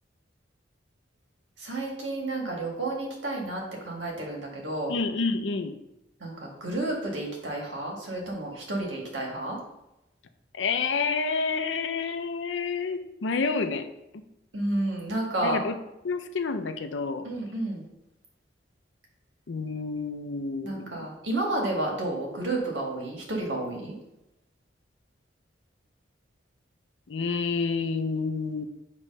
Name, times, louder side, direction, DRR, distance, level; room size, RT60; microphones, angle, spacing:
voice 1, 1.6-5.0 6.2-9.6 14.5-15.6 17.2-17.9 20.6-23.9, right 2 dB, 85° right, -1 dB, 1.8 m, -31 dB
voice 2, 4.9-5.7 10.5-13.9 14.1-14.2 15.4-15.8 16.0-17.3 19.5-21.1 27.1-28.7, left 4 dB, 90° left, 8 dB, 0.6 m, -29 dB
8.1 x 3.1 x 5.4 m, 0.91 s
head